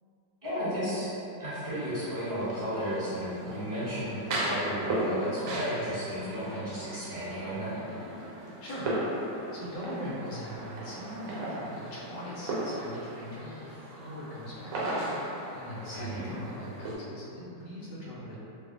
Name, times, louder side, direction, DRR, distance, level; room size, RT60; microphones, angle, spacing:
voice 1, 0.4-1.1 1.4-7.7 15.9-16.3, equal, 35° right, -13 dB, 1.3 m, -33 dB
sound 1, 1.5-16.9, right 1 dB, 65° right, 0.9 m, -37 dB
voice 2, 8.2-18.4, equal, 80° left, -6 dB, 1.3 m, -41 dB
3.1 x 2.1 x 3.6 m, 3.0 s
omnidirectional pair, 1.9 m